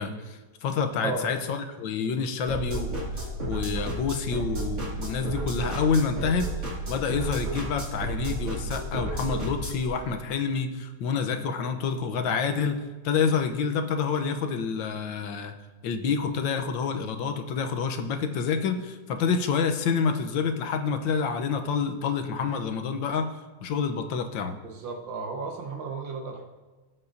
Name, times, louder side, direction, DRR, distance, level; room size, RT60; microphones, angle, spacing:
voice 1, 0.0-6.5 6.9-12.8 13.0-15.5 15.8-23.3 23.6-24.5, left 6 dB, 90° left, 6 dB, 1.6 m, -28 dB
sound 1, 2.5-9.9, right 2 dB, 40° right, 2.4 m, -32 dB
voice 2, 24.6-26.5, right 4 dB, 80° right, 2 dB, 2.0 m, -34 dB
18.5 x 7.7 x 2.7 m, 1.3 s
omnidirectional pair, 2.0 m